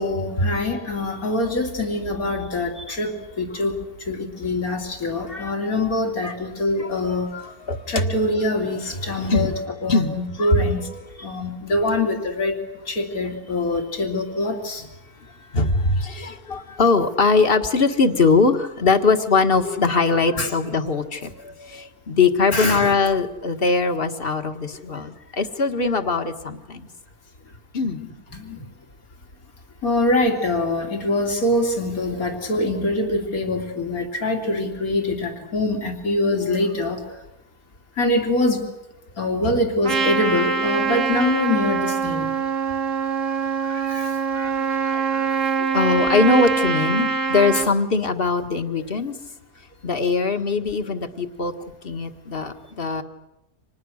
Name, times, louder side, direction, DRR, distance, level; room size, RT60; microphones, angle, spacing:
voice 1, 0.0-3.1 3.4-3.7 4.1-4.2 4.4-7.3 7.9-8.8 9.1-9.5 9.8-10.8 11.2-12.5 12.9-14.8 20.4-20.5 22.5-22.9 28.0-28.1 29.8-37.0 38.0-38.6 39.2-42.3, left 2 dB, 70° left, 3 dB, 3.6 m, -24 dB
voice 2, 6.8-8.0 9.3-9.5 9.9-11.0 15.2-26.9 27.7-28.0 39.4-39.6 43.6-45.4 45.7-49.2 49.8-51.5 51.8-53.0, left 4 dB, 40° left, 7 dB, 1.8 m, -22 dB
Trumpet, 39.8-47.7, right 5 dB, 60° right, 1.9 m, -24 dB
30.0 x 26.5 x 6.5 m, 0.92 s
omnidirectional pair, 1.6 m